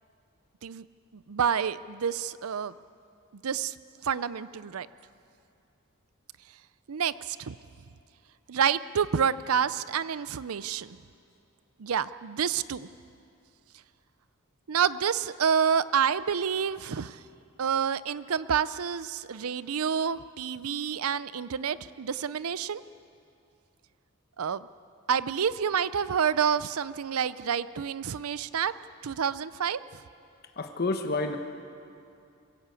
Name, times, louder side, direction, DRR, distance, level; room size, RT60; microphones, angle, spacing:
voice 1, 1.1-2.7 3.3-3.7 4.0-4.9 6.9-7.5 8.5-11.0 11.8-12.9 14.7-17.2 17.6-22.8 24.4-24.7 25.1-28.7 29.0-29.8, right 7 dB, 85° right, 16 dB, 0.6 m, -28 dB
voice 2, 30.6-31.4, left 3 dB, 50° left, 5 dB, 1.2 m, -29 dB
23.0 x 16.0 x 8.4 m, 2.5 s
head